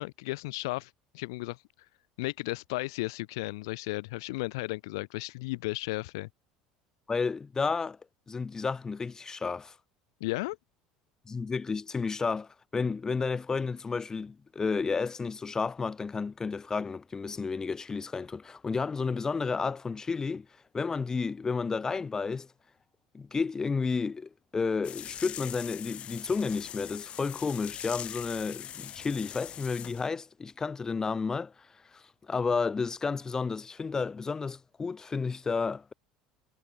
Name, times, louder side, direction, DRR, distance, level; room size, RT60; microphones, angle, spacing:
voice 1, 0.0-1.6 2.2-6.3 10.2-10.6, left 23 dB, 75° left, 1.2 m, -34 dB
voice 2, 7.1-8.0 8.3-9.7 11.3-20.5 20.7-22.5 23.1-31.5 31.9-35.9, left 4 dB, 25° left, 2.5 m, -31 dB
sound 1, 24.8-30.1, left 11 dB, 50° left, 5.7 m, -42 dB
hypercardioid pair, 80°, 2 cm